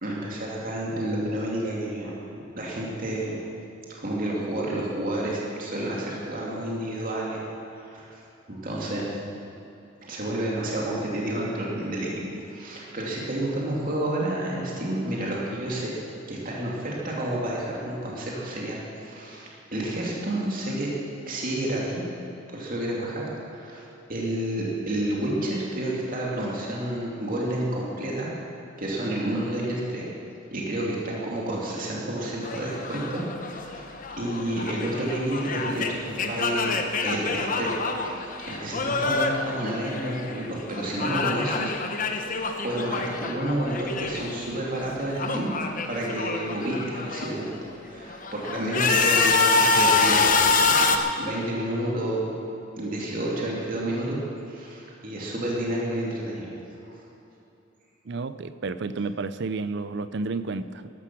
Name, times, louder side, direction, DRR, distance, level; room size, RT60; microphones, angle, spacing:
voice 1, 0.0-2.1 2.6-3.4 4.0-8.2 8.5-9.1 10.0-16.0 16.3-20.9 21.3-22.0 22.5-23.8 24.1-28.3 28.8-30.1 30.5-33.9 34.2-41.7 42.0-45.5 45.9-47.5 47.8-52.3 52.8-54.2 54.5-56.5 56.8-57.0, right 1 dB, 45° right, -4 dB, 2.6 m, -30 dB
sound 1, 32.4-40.5 40.7-44.5 44.8-47.4 47.9-51.0, left 4 dB, 45° left, 0.9 m, -26 dB
voice 2, 58.0-60.9, right 3 dB, 60° right, 13 dB, 0.5 m, -31 dB
14.5 x 13.0 x 6.1 m, 2.8 s
head